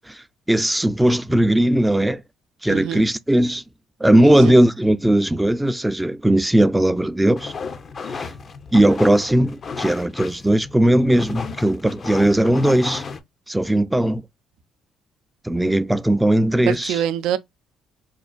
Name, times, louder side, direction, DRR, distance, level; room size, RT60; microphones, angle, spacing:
voice 1, 0.5-2.2 2.6-3.6 4.0-7.5 8.1-8.3 8.7-13.0 13.5-14.2 15.4-17.0, right 1 dB, 10° right, 0.4 m, -18 dB
voice 2, 2.7-3.0 4.2-4.6 16.7-17.4, right 10 dB, 75° right, 0.4 m, -25 dB
sound 1, 7.4-13.2, left 5 dB, 45° left, 0.6 m, -34 dB
5.1 x 2.4 x 2.3 m
supercardioid pair, 75°, 0 cm